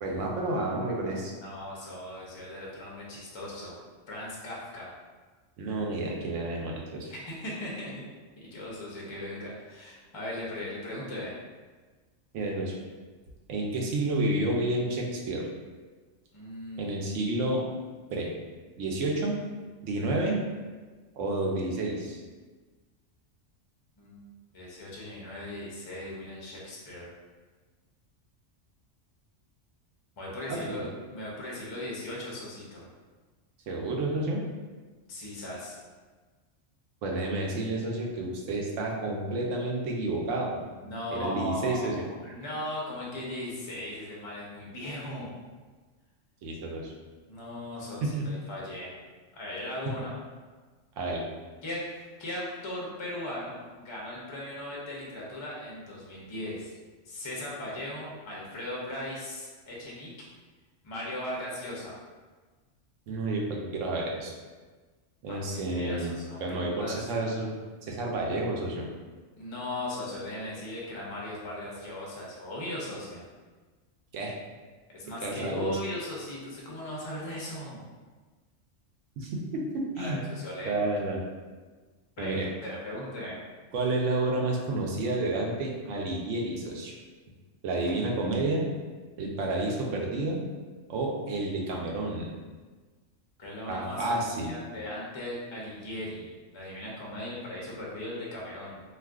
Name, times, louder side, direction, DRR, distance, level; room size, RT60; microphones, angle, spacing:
voice 1, 0.0-1.3 5.6-7.1 12.3-12.8 13.5-15.5 16.8-17.6 18.1-18.3 18.8-19.3 19.8-20.4 21.2-22.2 30.5-30.9 33.7-34.4 37.0-40.6 41.1-42.0 46.4-46.9 48.0-48.2 49.9-50.0 51.0-51.2 63.1-64.3 65.2-67.5 67.9-68.9 74.1-74.4 75.2-75.8 79.2-80.2 80.6-81.2 82.2-82.5 83.7-86.9 87.6-88.7 89.2-90.4 90.9-92.3 93.7-94.5, right 2 dB, 80° right, -1 dB, 0.9 m, -30 dB
voice 2, 1.4-3.7 4.1-4.9 7.1-8.0 8.4-11.3 16.3-16.9 24.0-24.2 24.5-27.1 30.2-30.9 31.1-32.9 35.1-35.8 40.8-45.3 47.3-48.9 49.3-50.2 51.6-56.7 57.0-60.1 60.8-62.0 65.3-67.0 69.3-73.2 74.9-77.8 80.0-80.7 82.2-83.4 93.4-94.0 94.4-98.8, left 1 dB, 45° left, -5 dB, 0.3 m, -38 dB
2.4 x 2.3 x 3.4 m, 1.4 s
omnidirectional pair, 1.3 m